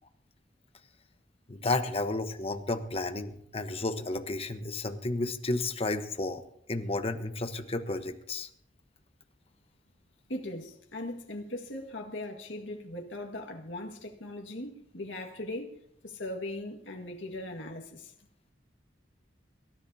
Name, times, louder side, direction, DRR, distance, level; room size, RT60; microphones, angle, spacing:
voice 1, 1.5-6.4 6.7-8.5, left 2 dB, 30° left, 1.1 m, -32 dB
voice 2, 10.3-18.1, left 1 dB, 85° left, 1.8 m, -39 dB
26.0 x 13.5 x 2.8 m
head